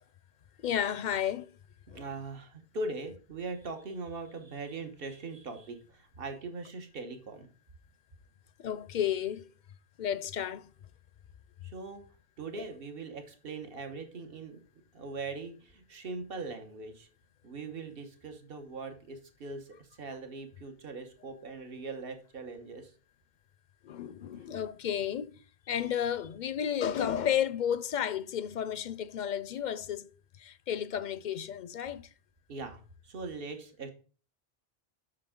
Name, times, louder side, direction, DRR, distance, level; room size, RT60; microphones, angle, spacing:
voice 1, 0.6-1.5 1.9-2.1 8.6-9.5 10.0-10.7 23.8-25.3 25.7-30.1 30.4-32.1, left 9 dB, 55° left, 0.6 m, -32 dB
voice 2, 1.9-7.5 11.6-12.0 12.4-14.6 14.9-17.1 17.4-19.7 20.0-22.9 32.5-33.9, right 3 dB, 65° right, 1.4 m, -41 dB
7.5 x 6.2 x 3.7 m
omnidirectional pair, 1.0 m